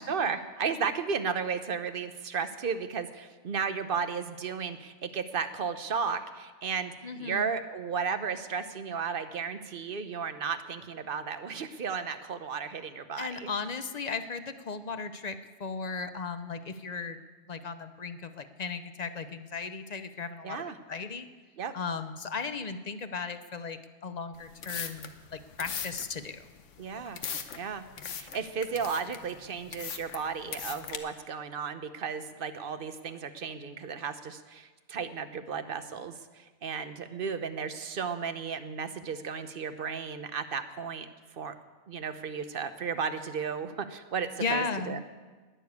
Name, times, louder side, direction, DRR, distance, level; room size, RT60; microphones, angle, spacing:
voice 1, 0.0-13.5 20.4-20.8 21.6-21.7 26.8-27.2 27.6-41.1 41.3-41.5 41.9-45.0, right 6 dB, 50° right, 10 dB, 0.9 m, -34 dB
voice 2, 7.0-7.5 13.2-17.2 17.5-21.3 21.7-26.4 44.4-45.0, left 4 dB, 40° left, 10 dB, 0.7 m, -36 dB
sound 1, 24.3-31.0, left 7 dB, 85° left, 1.3 m, -40 dB
20.0 x 6.9 x 8.3 m, 1.3 s
omnidirectional pair, 1.2 m